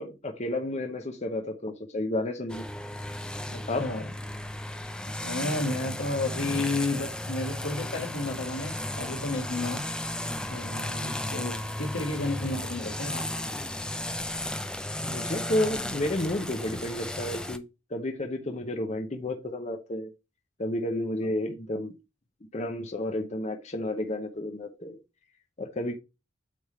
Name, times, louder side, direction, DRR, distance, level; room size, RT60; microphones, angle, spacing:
voice 1, 0.0-2.7 3.7-3.9 15.0-17.6 17.9-20.1 20.6-21.9 22.5-25.0 25.6-25.9, left 1 dB, 35° left, 0.8 m, -31 dB
sound 1, 2.5-17.6, left 1 dB, 5° left, 0.4 m, -34 dB
voice 2, 3.5-4.1 5.2-9.8 10.5-13.2 21.2-21.3, left 2 dB, 85° left, 1.9 m, -32 dB
8.4 x 3.6 x 4.3 m
head